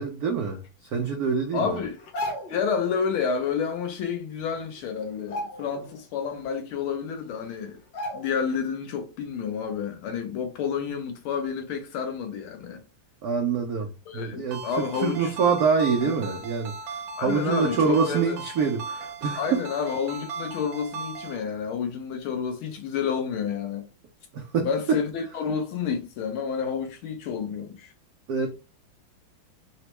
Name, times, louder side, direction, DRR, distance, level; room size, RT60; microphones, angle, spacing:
voice 1, 0.0-1.8 13.2-14.6 15.0-16.7 17.2-19.6 24.3-24.7 28.3-28.5, right 5 dB, 85° right, 0.8 m, -25 dB
voice 2, 1.5-2.0 2.5-7.8 8.1-12.8 14.1-15.3 16.0-16.1 17.2-18.4 19.4-23.8 24.6-27.9, left 6 dB, 80° left, 1.6 m, -30 dB
sound 1, 2.0-2.7 4.1-4.2 4.6-4.8 5.2-6.0 6.4-6.5 7.3-7.4 7.9-8.6 8.9-9.1, left 1 dB, 55° left, 1.5 m, -35 dB
Ringtone, 14.5-21.4, right 4 dB, 70° right, 1.3 m, -37 dB
4.1 x 2.1 x 2.9 m
omnidirectional pair, 2.3 m